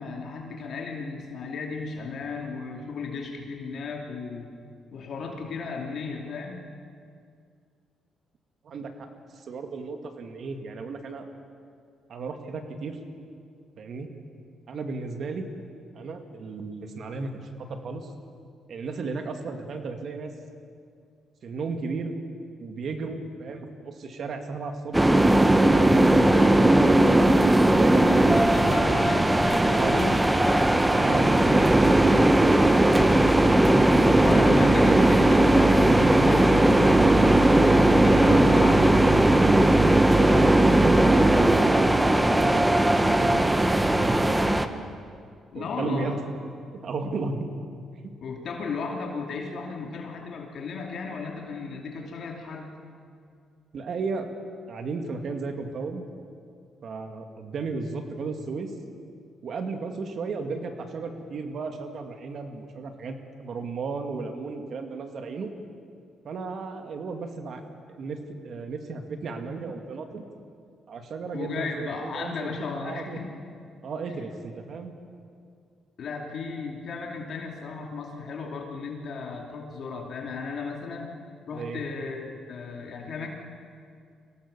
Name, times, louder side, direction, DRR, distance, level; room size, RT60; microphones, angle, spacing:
voice 1, 0.0-4.5 4.9-6.6 27.9-31.6 34.0-39.4 45.5-46.1 48.2-52.7 71.3-73.3 76.0-81.1 81.5-83.3, left 4 dB, 60° left, 1 dB, 2.7 m, -35 dB
voice 2, 8.6-9.1 9.4-11.3 12.1-13.0 13.8-14.1 14.7-15.5 15.9-17.3 17.6-18.1 18.7-20.3 21.4-22.1 22.6-25.0 25.5-27.1 27.6-29.0 29.7-30.1 30.6-32.0 34.3-35.1 40.2-42.7 43.0-44.6 45.5-46.2 46.7-47.5 53.7-54.3 54.7-56.0 56.8-58.7 59.4-65.5 66.2-67.6 67.9-68.2 68.4-70.3 70.9-73.2 73.8-74.9 81.5-81.8, right 4 dB, 60° right, 5 dB, 2.2 m, -34 dB
sound 1, 24.9-44.7, right 1 dB, 10° right, 1.0 m, -18 dB
23.5 x 17.0 x 6.9 m, 2.3 s
cardioid pair, 90°, 0 cm